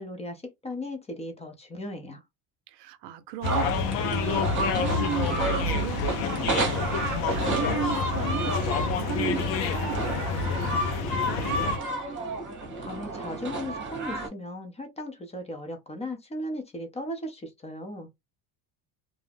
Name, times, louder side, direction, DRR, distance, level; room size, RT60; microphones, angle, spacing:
voice 1, 0.0-2.2 12.8-18.1, left 1 dB, 15° left, 0.5 m, -37 dB
voice 2, 2.7-6.7 7.0-8.5 8.9-11.6, right 10 dB, 65° right, 0.6 m, -36 dB
sound 1, 3.4-11.8, left 5 dB, 85° left, 0.7 m, -28 dB
sound 2, 3.4-14.3, right 2 dB, 25° right, 1.0 m, -31 dB
2.4 x 2.0 x 3.3 m
cardioid pair, 130°, 44 cm